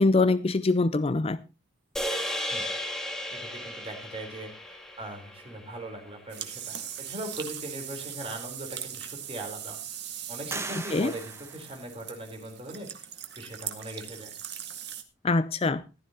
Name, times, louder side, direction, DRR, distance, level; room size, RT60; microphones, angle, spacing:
voice 1, 0.0-1.4 10.9-11.1 15.2-15.8, left 3 dB, 30° left, 0.5 m, -23 dB
sound 1, 2.0-6.4, equal, 5° left, 2.0 m, -35 dB
voice 2, 3.3-9.8 10.3-13.1 13.4-14.3, right 1 dB, 30° right, 4.0 m, -40 dB
sound 2, 6.3-15.0, right 10 dB, 60° right, 1.6 m, -40 dB
sound 3, 10.5-12.4, right 3 dB, 15° right, 1.3 m, -40 dB
15.0 x 12.5 x 2.9 m
head